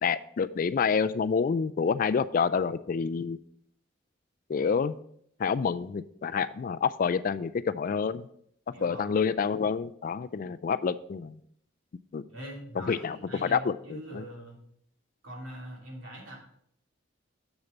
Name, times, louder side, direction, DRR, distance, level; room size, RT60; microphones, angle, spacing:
voice 1, 0.0-3.4 4.5-5.0 5.4-8.3 8.8-11.4 12.1-12.2 12.9-13.2 13.4-14.2, left 6 dB, 45° left, 13 dB, 0.3 m, -28 dB
voice 2, 8.7-9.2 12.3-14.6 15.2-16.4, equal, 85° right, -2 dB, 2.8 m, -43 dB
7.2 x 6.5 x 4.0 m, 0.67 s
head